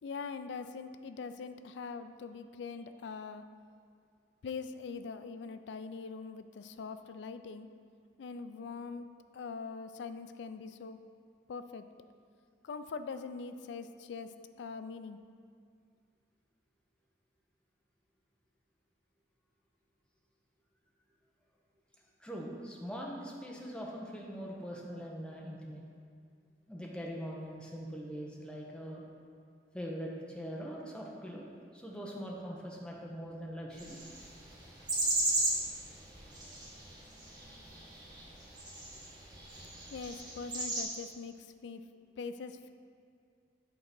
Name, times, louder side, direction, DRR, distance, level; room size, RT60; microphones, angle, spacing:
voice 1, 0.0-3.4 4.4-7.7 8.2-9.1 9.3-11.0 11.5-11.8 12.6-15.2 39.9-41.8 42.2-42.7, left 5 dB, 70° left, 10 dB, 0.4 m, -42 dB
voice 2, 22.2-25.9 26.7-29.0 29.7-34.0, equal, 5° left, -2 dB, 0.9 m, -42 dB
sound 1, 33.7-40.8, right 2 dB, 25° right, 1.4 m, -36 dB
8.1 x 3.7 x 6.0 m, 2.2 s
head